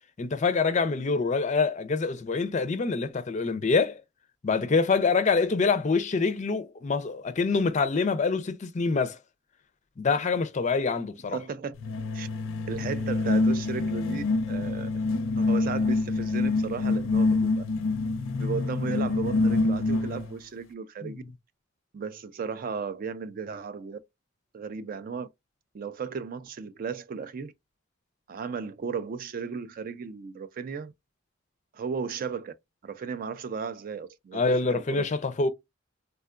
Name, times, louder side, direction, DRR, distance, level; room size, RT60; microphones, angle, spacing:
voice 1, 0.2-4.0 4.4-9.2 10.0-11.4 21.0-21.2 34.3-35.5, left 4 dB, 35° left, 0.4 m, -25 dB
voice 2, 11.3-11.7 12.1-12.3 12.7-14.9 15.4-17.6 18.4-21.2 21.9-24.0 24.5-25.3 25.7-27.5 28.3-30.9 31.7-32.5 32.8-35.1, right 5 dB, 45° right, 0.3 m, -35 dB
sound 1, 11.8-20.4, left 3 dB, 90° left, 0.5 m, -26 dB
3.5 x 2.2 x 2.4 m
head